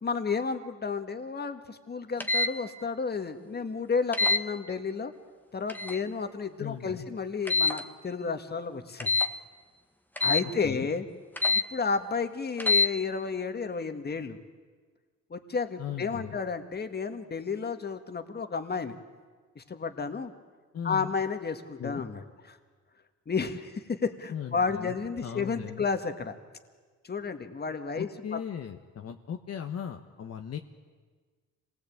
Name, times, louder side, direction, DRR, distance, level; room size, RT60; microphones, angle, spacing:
voice 1, 0.0-5.1 5.5-9.1 10.2-11.1 11.5-14.4 15.3-19.0 19.6-20.3 20.8-22.6 23.3-26.4 27.0-28.4, left 5 dB, 35° left, 7 dB, 2.0 m, -32 dB
sound 1, 2.2-2.5 4.1-4.4 5.7-6.0 7.5-7.8 9.0-9.3 10.2-10.4 11.4-11.6 12.6-12.9, left 3 dB, 5° left, 1.6 m, -25 dB
voice 2, 6.6-7.1 10.6-10.9 15.8-16.4 20.7-21.1 21.8-22.0 24.3-24.9 25.2-25.9 27.9-30.6, left 8 dB, 55° left, 4 dB, 1.4 m, -38 dB
26.5 x 19.5 x 8.8 m, 1.5 s
cardioid pair, 90°, 30 cm